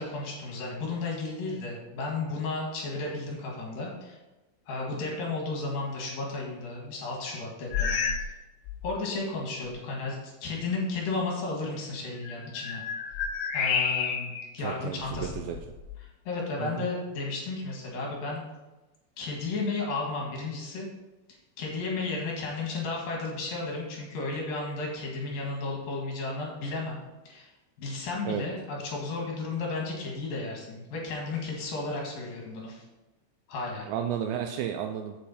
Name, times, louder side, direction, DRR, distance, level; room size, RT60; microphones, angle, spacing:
voice 1, 0.0-4.2 4.7-8.0 8.8-12.8 13.5-15.5 16.3-18.4 19.2-20.9 21.6-27.0 27.3-27.5 27.8-32.8 33.5-33.9, left 3 dB, 60° left, -2 dB, 3.0 m, -33 dB
sound 1, 7.7-8.4 8.6-9.0 9.7-9.8 12.1-14.5 15.0-16.0, left 6 dB, 80° left, 2.3 m, -31 dB
voice 2, 14.6-15.6 16.6-16.9 28.2-28.5 33.9-35.2, right 9 dB, 85° right, 5 dB, 2.5 m, -33 dB
8.2 x 7.7 x 4.3 m, 1.1 s
omnidirectional pair, 5.5 m